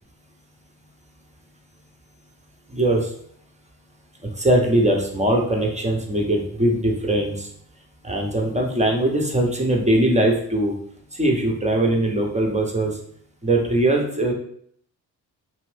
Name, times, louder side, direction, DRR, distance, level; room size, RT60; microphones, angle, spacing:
voice 1, 2.7-3.1 4.2-7.5 8.0-10.7 11.1-13.0 13.4-14.3, right 1 dB, 15° right, 1 dB, 0.8 m, -21 dB
2.6 x 2.5 x 3.3 m, 0.63 s
hypercardioid pair, 45°, 49 cm